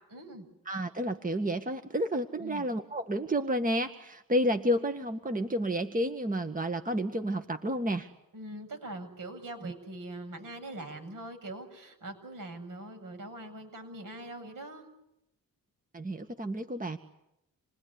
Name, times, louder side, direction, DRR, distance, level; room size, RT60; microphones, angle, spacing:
voice 1, 0.1-0.5 2.4-2.7 8.3-14.9, right 1 dB, 65° right, 5 dB, 7.8 m, -42 dB
voice 2, 0.7-8.1 9.6-9.7 15.9-17.0, equal, 25° right, 7 dB, 1.8 m, -30 dB
28.0 x 20.0 x 9.9 m, 0.87 s
cardioid pair, 60°, 35 cm